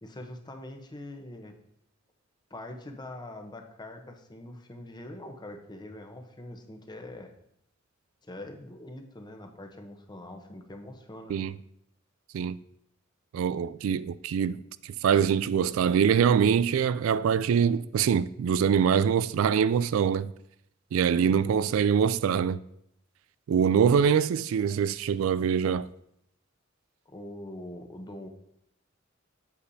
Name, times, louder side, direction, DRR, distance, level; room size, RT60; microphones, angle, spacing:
voice 1, 0.0-1.6 2.5-7.3 8.2-11.5 21.1-21.7 27.1-28.3, left 1 dB, 20° left, 0.8 m, -43 dB
voice 2, 13.3-14.6 15.0-20.3 20.9-22.6 23.5-25.9, right 7 dB, 85° right, 0.3 m, -24 dB
8.3 x 7.9 x 2.7 m
head